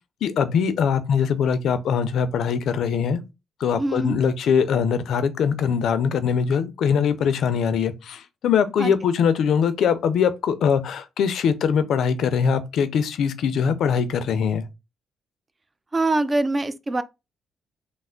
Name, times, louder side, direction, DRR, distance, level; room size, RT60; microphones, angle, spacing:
voice 1, 0.2-3.2 3.6-14.6, left 7 dB, 70° left, 0.4 m, -22 dB
voice 2, 3.7-4.2 8.8-8.9 15.9-17.0, right 2 dB, 25° right, 0.4 m, -23 dB
3.2 x 2.0 x 3.7 m
cardioid pair, 90°, 0 cm